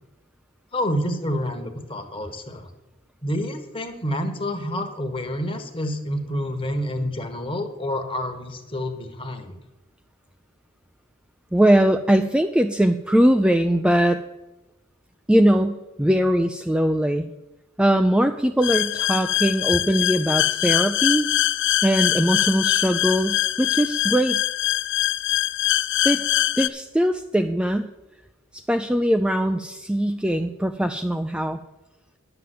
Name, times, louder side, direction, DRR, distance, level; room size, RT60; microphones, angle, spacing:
voice 1, 0.7-2.7 3.2-9.6, equal, 25° left, 6 dB, 1.3 m, -28 dB
voice 2, 11.5-14.2 15.3-17.3 17.8-21.3 21.8-24.4 26.0-26.2 26.6-27.9 28.5-31.6, right 1 dB, 5° right, 6 dB, 0.3 m, -21 dB
sound 1, 18.6-26.7, left 14 dB, 60° left, 0.4 m, -23 dB
10.5 x 6.9 x 7.6 m, 1.0 s
head